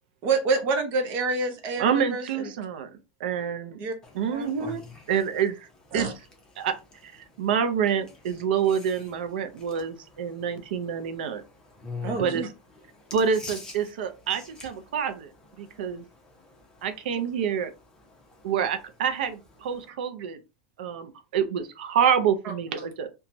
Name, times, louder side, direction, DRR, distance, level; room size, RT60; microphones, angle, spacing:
voice 1, 0.2-2.5 3.8-3.9 4.3-4.7 5.9-6.1 12.0-12.5, right 4 dB, 40° right, 0.8 m, -27 dB
voice 2, 1.8-3.8 4.1-4.8 5.1-5.7 5.9-6.1 6.6-6.7 7.0-11.4 12.2-12.5 13.1-15.3 15.6-16.0 16.8-17.7 18.4-20.4 20.8-23.1, right 7 dB, 90° right, 0.5 m, -27 dB
voice 3, 4.6-5.1 6.5-6.7 7.3-7.4 8.7-9.0 9.5-9.7 10.3-10.6 10.8-12.4 12.9-13.7 14.3-15.0 15.6-16.9 18.1-18.5, left 4 dB, 15° left, 0.8 m, -43 dB
2.9 x 2.3 x 2.6 m
supercardioid pair, 160°, 5 cm